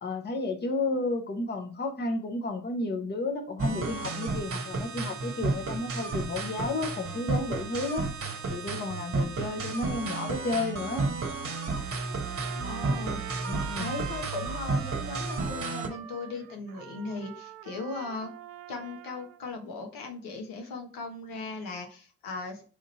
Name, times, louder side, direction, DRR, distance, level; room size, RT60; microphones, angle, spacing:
voice 1, 0.0-8.1 8.5-11.1 13.3-13.9, left 2 dB, 30° left, 5 dB, 0.9 m, -32 dB
sound 1, 3.6-15.9, right 3 dB, 40° right, 1.0 m, -32 dB
Trumpet, 12.1-19.4, right 10 dB, 65° right, 0.5 m, -44 dB
voice 2, 12.5-13.3 13.8-18.3 18.7-22.6, left 3 dB, 70° left, 3 dB, 1.1 m, -38 dB
5.0 x 2.5 x 4.1 m, 0.39 s
hypercardioid pair, 50°, 36 cm